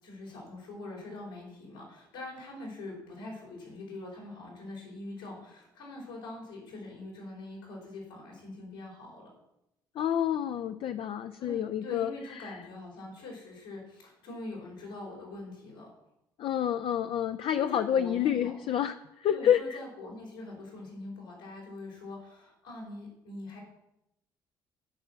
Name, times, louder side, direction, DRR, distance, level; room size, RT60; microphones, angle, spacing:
voice 1, 0.0-9.3 11.4-15.9 17.5-18.5 19.3-23.6, left 2 dB, 80° left, -3 dB, 4.5 m, -43 dB
voice 2, 10.0-12.1 12.4-12.6 16.4-19.8, left 9 dB, 55° left, 9 dB, 0.5 m, -28 dB
11.5 x 5.7 x 7.3 m, 0.87 s
hypercardioid pair, 50°, 11 cm